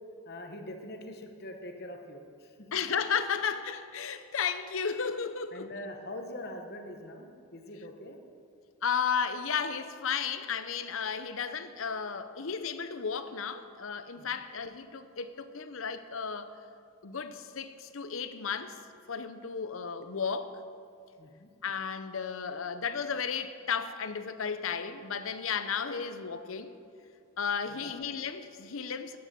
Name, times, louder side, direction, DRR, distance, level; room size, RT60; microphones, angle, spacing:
voice 1, 0.2-2.7 5.5-8.2 14.2-14.3 21.2-21.5 27.7-27.9, left 1 dB, 50° left, 4 dB, 1.0 m, -43 dB
voice 2, 2.7-5.7 8.8-16.5 17.0-18.8 19.1-20.6 21.6-26.7 27.4-29.2, left 6 dB, 70° left, 11 dB, 0.7 m, -34 dB
11.0 x 8.8 x 6.8 m, 2.5 s
head